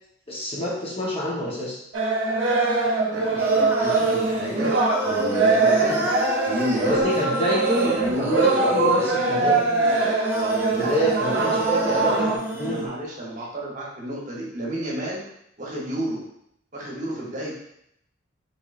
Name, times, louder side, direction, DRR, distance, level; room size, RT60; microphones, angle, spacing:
voice 1, 0.3-1.8 6.8-7.9 8.2-9.7 10.3-12.9, left 1 dB, 30° left, -5 dB, 0.8 m, -27 dB
sound 1, 1.9-12.4, right 3 dB, 85° right, 0.7 m, -22 dB
voice 2, 3.1-4.7 5.0-6.1 6.4-7.3 7.8-8.4 10.7-11.7 12.0-12.1 12.6-15.3 15.6-16.3 16.7-17.6, right 1 dB, 40° right, -4 dB, 0.9 m, -31 dB
Singing, 3.4-12.9, right 1 dB, 10° right, 0.4 m, -30 dB
4.2 x 3.0 x 2.4 m, 0.76 s
head